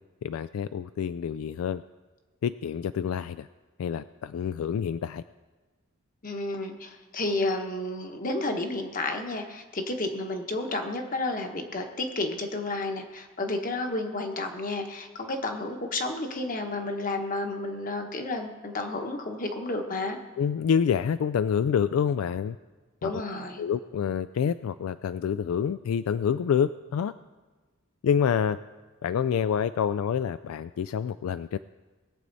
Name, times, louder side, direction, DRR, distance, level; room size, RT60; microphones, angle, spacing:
voice 1, 0.2-1.8 2.4-3.5 3.8-5.2 20.4-22.6 23.0-23.1 23.6-27.1 28.0-28.6 29.0-31.6, left 7 dB, 75° left, 13 dB, 0.3 m, -27 dB
voice 2, 6.2-20.2 23.0-23.7, left 2 dB, 40° left, 4 dB, 1.2 m, -31 dB
20.0 x 7.6 x 4.0 m, 1.3 s
head